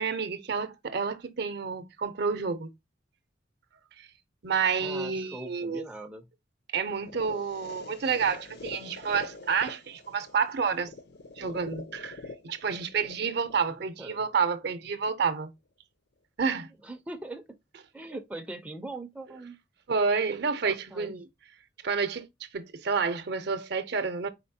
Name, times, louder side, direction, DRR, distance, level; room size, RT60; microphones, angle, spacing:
voice 1, 0.0-2.7 4.4-5.8 6.7-10.9 11.4-12.2 12.4-15.5 16.4-16.7 19.9-21.2 21.8-22.3 22.5-24.3, right 5 dB, 60° right, 0.6 m, -29 dB
voice 2, 4.8-6.3 13.7-14.2 16.8-17.6 17.9-19.6 20.6-21.1, right 2 dB, 10° right, 0.4 m, -41 dB
sound 1, 6.9-14.9, left 3 dB, 60° left, 0.6 m, -45 dB
4.3 x 3.9 x 2.6 m
head